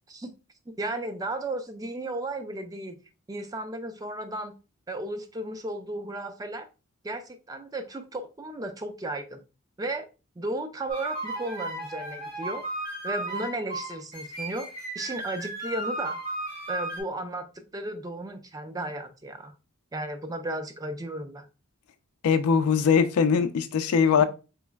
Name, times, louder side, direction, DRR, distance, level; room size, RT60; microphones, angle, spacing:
voice 1, 0.8-3.0 3.3-4.5 4.9-6.7 7.0-9.4 9.8-10.1 10.4-12.6 13.0-14.7 14.9-16.2 16.7-19.5 19.9-21.5 24.2-24.3, right 2 dB, 15° right, 0.3 m, -34 dB
sound 1, 10.9-17.0, right 2 dB, 40° right, 1.6 m, -35 dB
voice 2, 22.2-24.2, left 6 dB, 90° left, 0.4 m, -21 dB
3.9 x 3.1 x 2.3 m
head